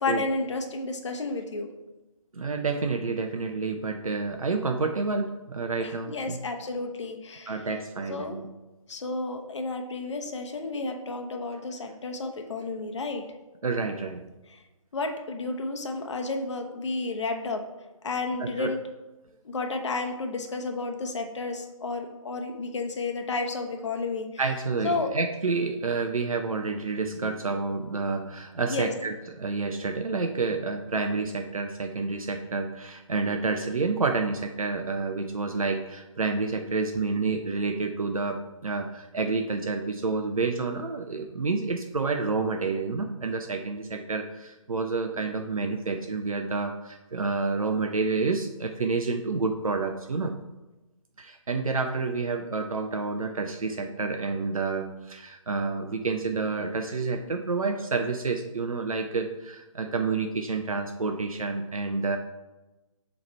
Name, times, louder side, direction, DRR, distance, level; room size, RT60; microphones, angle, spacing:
voice 1, 0.0-1.7 5.8-7.7 8.1-8.4 8.9-13.2 14.5-14.6 14.9-17.6 18.0-18.8 19.4-24.3 24.8-25.1 28.7-28.9, left 3 dB, 55° left, 4 dB, 0.8 m, -31 dB
voice 2, 2.3-6.4 7.5-8.4 13.6-14.2 18.4-18.7 24.4-50.3 51.2-62.2, right 4 dB, 75° right, 4 dB, 0.6 m, -29 dB
7.0 x 3.2 x 4.4 m, 1.1 s
figure-of-eight pair, 145°, 18 cm